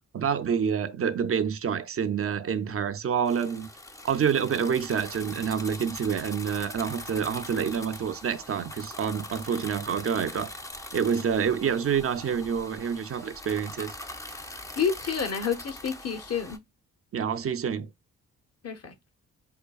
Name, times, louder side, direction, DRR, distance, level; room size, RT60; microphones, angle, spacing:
voice 1, 0.1-3.7 4.0-10.5 10.9-13.9 17.1-17.9, right 7 dB, 40° right, 0.5 m, -27 dB
sound 1, 3.2-16.6, left 1 dB, 10° left, 0.5 m, -42 dB
voice 2, 14.8-16.6 18.6-18.9, left 7 dB, 40° left, 0.9 m, -29 dB
5.7 x 2.2 x 2.3 m
hypercardioid pair, 45°, 37 cm